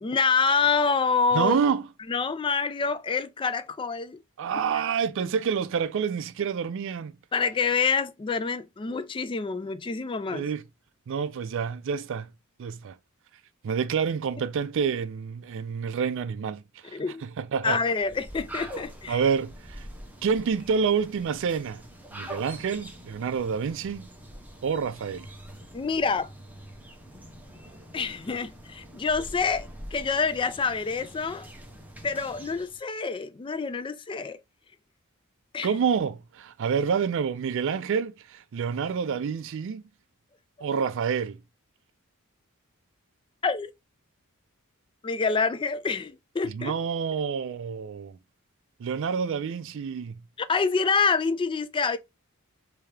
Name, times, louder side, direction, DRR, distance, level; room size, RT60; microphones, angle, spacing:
voice 1, 0.0-1.6 2.1-4.2 7.3-10.5 16.9-17.2 17.6-19.2 25.7-26.3 27.9-31.5 32.0-34.4 35.5-35.7 43.4-43.7 45.0-46.7 50.4-52.0, left 5 dB, 25° left, 0.3 m, -27 dB
voice 2, 1.3-1.8 4.4-7.1 10.3-10.6 11.1-12.3 12.6-13.0 13.6-17.8 19.1-19.8 20.2-21.8 22.1-24.1 24.6-25.3 35.6-39.8 40.6-41.4 46.5-48.2 48.8-50.2, right 6 dB, 60° right, 0.4 m, -28 dB
sound 1, 17.9-32.8, right 1 dB, 10° right, 0.7 m, -44 dB
3.5 x 2.7 x 3.2 m
head